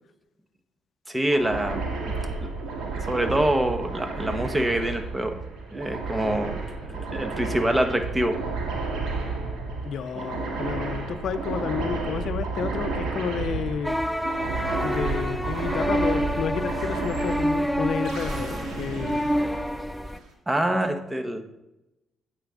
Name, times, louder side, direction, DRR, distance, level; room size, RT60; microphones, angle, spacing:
voice 1, 1.1-1.8 2.4-2.5 2.9-5.4 5.7-8.4 10.2-10.3 20.5-21.4, right 1 dB, 15° right, 7 dB, 1.2 m, -25 dB
sound 1, 1.3-20.2, right 3 dB, 80° right, 1.8 m, -32 dB
voice 2, 9.8-14.0 14.8-19.2, left 7 dB, 70° left, 12 dB, 0.6 m, -31 dB
sound 2, 13.8-20.2, equal, 5° left, 0.4 m, -28 dB
8.8 x 7.8 x 3.8 m, 0.94 s
supercardioid pair, 65°, 0 cm